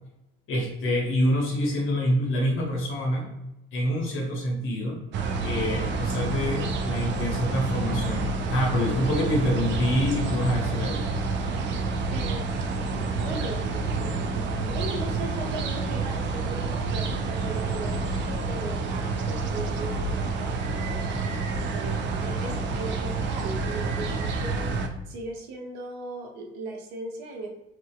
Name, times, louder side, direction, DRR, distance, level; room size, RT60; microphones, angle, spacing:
voice 1, 0.5-3.3 3.7-5.0 5.4-11.2, left 1 dB, 40° left, 0 dB, 0.7 m, -26 dB
sound 1, 5.1-24.9, right 3 dB, 35° right, 0.4 m, -28 dB
voice 2, 12.1-12.6 12.9-21.0 21.7-24.8 25.0-27.5, right 2 dB, 60° right, 1 dB, 0.7 m, -38 dB
3.9 x 2.1 x 2.3 m, 0.91 s
figure-of-eight pair, 55°, 33 cm